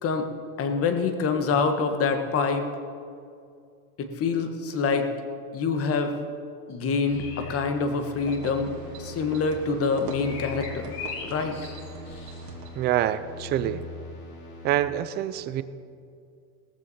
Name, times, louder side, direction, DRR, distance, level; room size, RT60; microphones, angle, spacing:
voice 1, 0.6-2.7 4.0-5.1 5.5-6.2 6.7-8.7 9.0-11.0 11.2-11.6, left 4 dB, 30° left, 6 dB, 1.4 m, -26 dB
sound 1, 6.7-7.7 10.2-12.5, left 6 dB, 50° left, 3.2 m, -40 dB
sound 2, 7.1-14.8, left 3 dB, 85° left, 3.9 m, -42 dB
sound 3, 8.1-12.9, right 6 dB, 75° right, 2.6 m, -43 dB
voice 2, 12.8-13.8 14.6-15.6, right 12 dB, 25° right, 14 dB, 0.3 m, -26 dB
18.0 x 14.0 x 4.2 m, 2.4 s
supercardioid pair, 140°, 44 cm